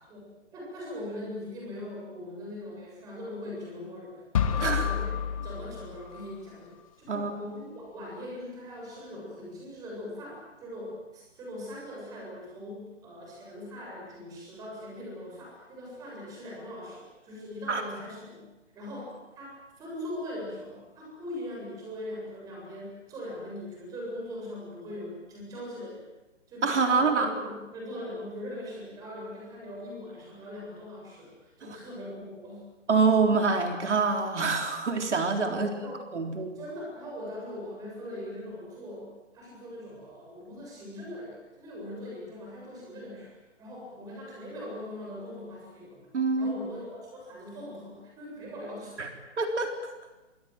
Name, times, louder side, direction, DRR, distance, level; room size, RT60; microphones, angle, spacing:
voice 1, 0.1-4.3 4.5-18.5 18.7-26.1 26.5-32.7 35.5-36.0 36.5-46.1 46.4-49.0, left 1 dB, 10° right, -3 dB, 7.5 m, -41 dB
sound 1, 4.3-6.4, left 8 dB, 25° left, 1.9 m, -29 dB
voice 2, 4.6-4.9 7.1-7.3 17.7-17.8 26.6-27.3 32.9-35.7 36.1-36.6 46.1-46.5 49.0-49.1 49.4-49.7, right 4 dB, 70° right, 4 dB, 3.9 m, -25 dB
28.5 x 23.0 x 7.8 m, 1.1 s
hypercardioid pair, 170°, 37 cm